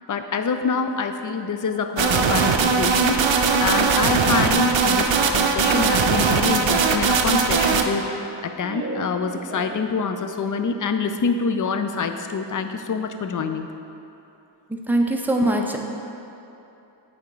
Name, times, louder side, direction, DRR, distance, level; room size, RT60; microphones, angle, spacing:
voice 1, 0.1-3.3 3.6-13.7 15.4-15.5, left 5 dB, 45° left, 7 dB, 0.4 m, -26 dB
sound 1, 2.0-7.8, right 5 dB, 80° right, 0.5 m, -19 dB
Laughter, 7.9-10.3, right 1 dB, 25° right, 1.2 m, -36 dB
voice 2, 14.7-15.8, right 1 dB, 5° right, 1 dB, 0.5 m, -22 dB
8.4 x 3.6 x 3.8 m, 2.8 s
wide cardioid pair, 55°, 45 cm